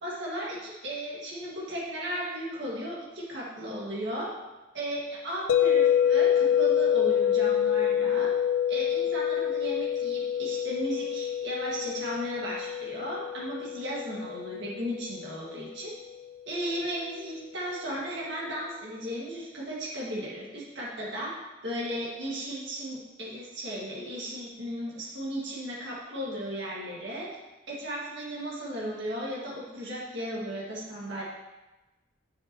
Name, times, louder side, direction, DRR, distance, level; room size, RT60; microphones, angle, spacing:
voice 1, 0.0-4.3 4.7-8.3 8.7-15.9 16.5-21.3 21.6-27.3 27.7-31.2, equal, 60° right, -5 dB, 1.9 m, -35 dB
sound 1, 5.5-15.6, left 9 dB, 65° left, 0.3 m, -26 dB
10.5 x 6.1 x 3.0 m, 1.1 s
head